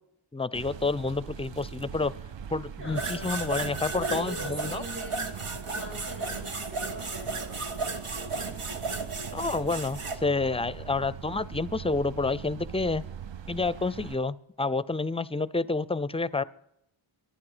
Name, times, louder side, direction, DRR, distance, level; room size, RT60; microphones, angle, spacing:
voice 1, 0.3-2.1 2.5-4.8 9.3-13.0 13.5-16.4, left 3 dB, 10° left, 19 dB, 0.4 m, -29 dB
sound 1, 0.5-14.2, right 8 dB, 60° right, 0.6 m, -42 dB
voice 2, 2.8-3.3 3.9-5.3 5.8-7.6, equal, 45° right, 0 dB, 7.8 m, -41 dB
sound 2, 2.9-10.2, right 3 dB, 85° right, 1.4 m, -34 dB
23.5 x 9.2 x 5.0 m, 0.81 s
wide cardioid pair, 45°, 50 cm